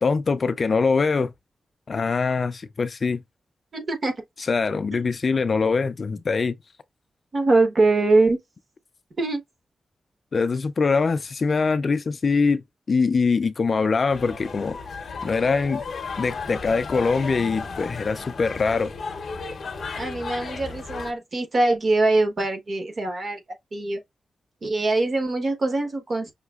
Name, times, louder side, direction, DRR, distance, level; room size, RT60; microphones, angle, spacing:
voice 1, 0.0-1.3 1.9-3.2 4.5-6.5 10.3-12.6 12.9-14.8 15.2-15.8 16.2-18.9, left 4 dB, 40° left, 0.3 m, -23 dB
voice 2, 3.7-4.1 4.9-5.0 7.3-8.4 9.2-9.4 19.9-23.4 23.7-24.0 24.6-26.3, right 2 dB, 35° right, 1.1 m, -22 dB
sound 1, 14.1-21.1, left 4 dB, 55° left, 0.7 m, -34 dB
5.6 x 2.8 x 2.3 m
wide cardioid pair, 180°, 0 cm